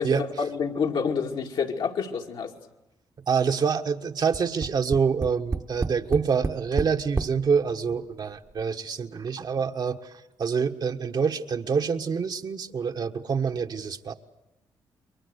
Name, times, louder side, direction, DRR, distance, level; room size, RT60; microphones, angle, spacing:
voice 1, 0.0-2.5, left 6 dB, 70° left, 2 dB, 2.5 m, -28 dB
voice 2, 3.3-10.1 10.4-14.1, right 6 dB, 55° right, 5 dB, 1.5 m, -26 dB
Tap, 4.3-7.4 8.2-8.3 8.6-8.7, right 3 dB, 30° right, 1.2 m, -29 dB
29.0 x 23.0 x 8.2 m, 0.93 s
supercardioid pair, 55°, 9 cm